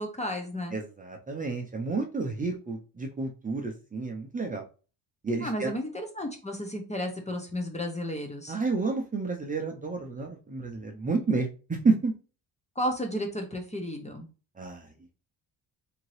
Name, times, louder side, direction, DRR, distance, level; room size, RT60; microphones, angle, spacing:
voice 1, 0.0-0.8 5.4-8.6 12.8-14.3, equal, 15° left, 4 dB, 0.7 m, -33 dB
voice 2, 0.7-4.6 5.2-5.7 8.5-11.5 11.8-12.1 14.6-14.8, right 4 dB, 20° right, 2 dB, 0.6 m, -30 dB
3.7 x 2.9 x 3.1 m, 0.35 s
cardioid pair, 110°, 42 cm